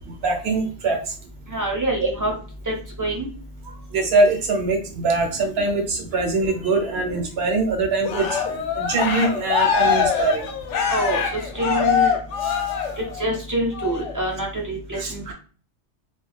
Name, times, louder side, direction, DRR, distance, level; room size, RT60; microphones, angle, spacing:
voice 1, 0.2-1.0 3.9-10.5 12.4-12.5 15.0-15.3, right 3 dB, 60° right, 3 dB, 0.9 m, -23 dB
voice 2, 1.5-2.3 2.7-3.3 10.9-11.2 11.5-12.2 13.2-15.2, right 1 dB, 20° right, -1 dB, 0.6 m, -25 dB
Cheering, 8.0-13.3 13.7-14.1, left 7 dB, 80° left, 0.9 m, -23 dB
2.4 x 2.3 x 3.2 m, 0.39 s
omnidirectional pair, 1.2 m